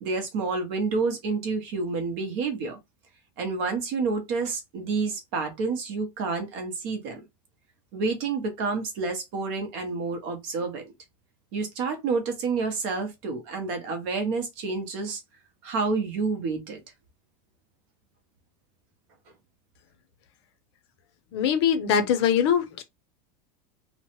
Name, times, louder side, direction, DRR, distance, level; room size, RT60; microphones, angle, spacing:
voice 1, 0.0-2.8 3.4-7.2 7.9-10.9 11.5-15.2 15.6-16.8, right 4 dB, 40° right, 0.8 m, -29 dB
voice 2, 21.3-22.8, left 8 dB, 50° left, 0.5 m, -22 dB
3.0 x 2.1 x 2.9 m
supercardioid pair, 180°, 18 cm